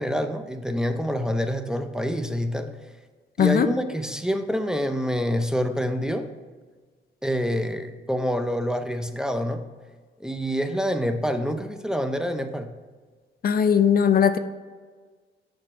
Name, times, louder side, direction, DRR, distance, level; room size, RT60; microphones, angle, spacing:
voice 1, 0.0-2.8 3.4-6.3 7.2-9.7 10.2-12.7, equal, 5° right, 7 dB, 0.5 m, -27 dB
voice 2, 13.4-14.4, left 8 dB, 50° left, 11 dB, 0.5 m, -19 dB
7.3 x 4.4 x 5.3 m, 1.5 s
cardioid pair, 90°, 20 cm